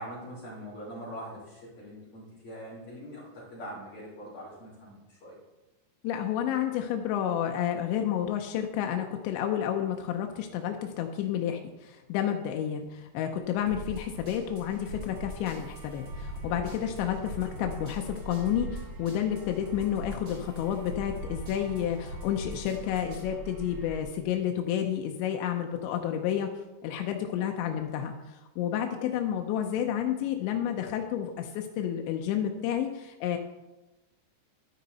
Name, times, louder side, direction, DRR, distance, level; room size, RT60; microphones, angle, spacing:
voice 1, 0.0-5.4, equal, 35° left, -8 dB, 3.6 m, -43 dB
voice 2, 6.0-26.5 26.8-33.4, left 10 dB, 90° left, 4 dB, 3.0 m, -30 dB
sound 1, 13.4-24.0, right 1 dB, 75° right, 6.4 m, -46 dB
sound 2, 13.7-23.3, equal, 30° right, 4.3 m, -42 dB
12.5 x 9.5 x 4.1 m, 1.1 s
omnidirectional pair, 5.1 m